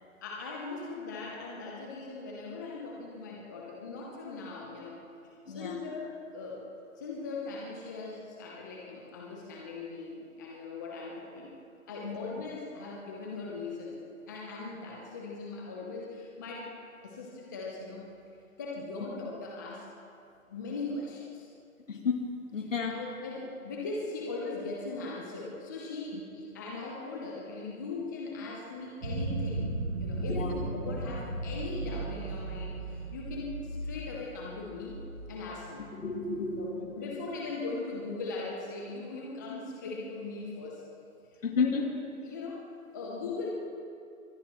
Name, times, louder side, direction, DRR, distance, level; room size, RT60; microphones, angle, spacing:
voice 1, 0.2-5.0 5.5-6.6 7.0-11.5 11.9-16.7 17.0-18.1 18.6-19.9 20.5-21.5 22.9-29.7 30.0-35.0 35.3-35.9 36.5-40.8 41.3-41.8 42.2-42.6 42.9-43.5, left 3 dB, 15° left, -2 dB, 0.8 m, -39 dB
voice 2, 5.5-5.8 12.0-12.2 21.9-22.2 22.5-23.0 30.2-30.5 35.9-37.0 41.4-41.9, left 4 dB, 60° left, 1 dB, 2.7 m, -31 dB
sound 1, 29.0-36.1, right 2 dB, 90° right, 3.4 m, -36 dB
24.0 x 19.5 x 3.1 m, 2.5 s
hypercardioid pair, 155°, 43 cm